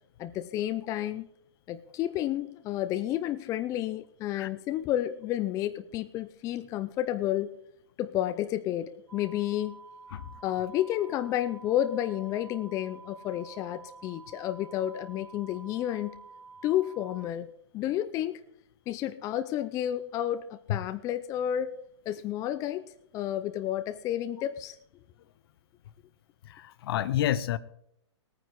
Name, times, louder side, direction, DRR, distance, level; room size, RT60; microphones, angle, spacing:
voice 1, 0.2-1.3 1.7-7.5 8.0-9.8 10.4-16.2 16.6-17.5 17.7-18.4 18.9-21.7 22.1-22.8 23.1-24.8, left 12 dB, 20° left, 10 dB, 0.5 m, -31 dB
sound 1, 9.1-17.3, right 4 dB, 75° right, 1.9 m, -50 dB
voice 2, 26.4-27.6, left 12 dB, 55° left, 15 dB, 0.8 m, -29 dB
18.0 x 9.4 x 4.7 m, 0.73 s
hypercardioid pair, 140°, 15 cm